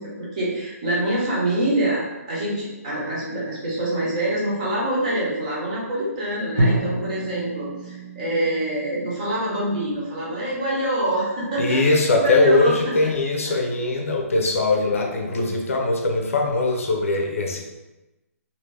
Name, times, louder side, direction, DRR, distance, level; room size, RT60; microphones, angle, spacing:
voice 1, 0.0-12.9 13.5-13.6 14.9-15.1 17.5-17.6, right 1 dB, 25° right, -6 dB, 0.9 m, -25 dB
Drum, 6.6-10.4, right 1 dB, 65° right, 0.8 m, -28 dB
voice 2, 11.6-17.6, left 2 dB, 60° left, 1 dB, 0.6 m, -21 dB
2.7 x 2.7 x 3.2 m, 1.0 s
hypercardioid pair, 175°, 8 cm